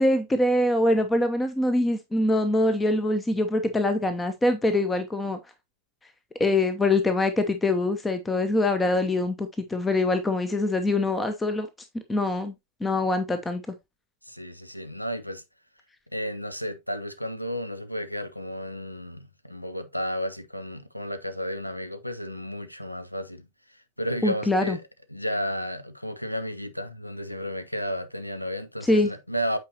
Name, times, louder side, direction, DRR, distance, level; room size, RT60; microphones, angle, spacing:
voice 1, 0.0-5.4 6.4-11.7 12.1-12.5 12.8-13.8 24.2-24.8 28.8-29.1, left 2 dB, 10° left, 0.7 m, -24 dB
voice 2, 14.2-15.4 16.1-24.8 25.1-29.6, equal, 90° left, 0.7 m, -33 dB
8.5 x 4.7 x 2.8 m
figure-of-eight pair, 90°, 0 cm